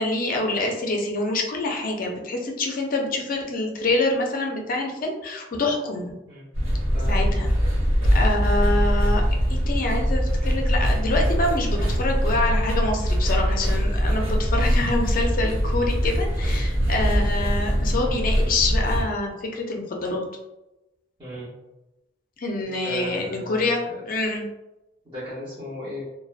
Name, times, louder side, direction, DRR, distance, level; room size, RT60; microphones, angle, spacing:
voice 1, 0.0-6.1 7.1-7.5 8.1-9.2 9.5-20.2 22.4-24.5, left 2 dB, 45° left, 1 dB, 0.4 m, -26 dB
sound 1, 6.5-19.1, equal, 85° right, 0.9 m, -22 dB
voice 2, 21.2-21.5 22.6-24.0 25.0-26.0, left 1 dB, 25° right, -12 dB, 0.8 m, -36 dB
2.4 x 2.1 x 2.4 m, 0.98 s
head